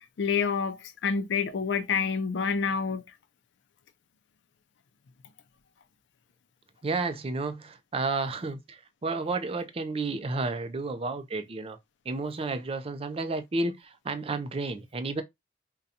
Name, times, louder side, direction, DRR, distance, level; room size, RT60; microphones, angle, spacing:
voice 1, 0.2-3.0, left 5 dB, 80° left, 0.5 m, -28 dB
voice 2, 6.8-11.8 12.1-15.2, right 3 dB, 30° right, 0.4 m, -31 dB
3.9 x 2.2 x 2.7 m
head